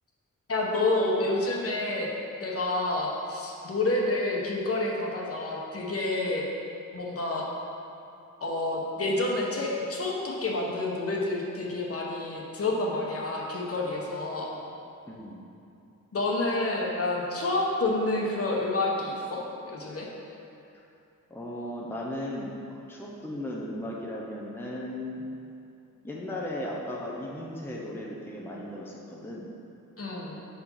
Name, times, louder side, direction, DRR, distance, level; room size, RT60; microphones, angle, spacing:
voice 1, 0.5-2.1 2.4-6.4 6.9-7.5 8.4-14.5 16.1-19.4 19.7-20.1 30.0-30.4, left 2 dB, 45° left, -2 dB, 1.2 m, -29 dB
voice 2, 15.1-15.4 21.3-25.3 26.0-29.5, left 1 dB, 5° left, -3 dB, 0.7 m, -36 dB
5.1 x 4.9 x 5.6 m, 2.6 s
cardioid pair, 90°, 32 cm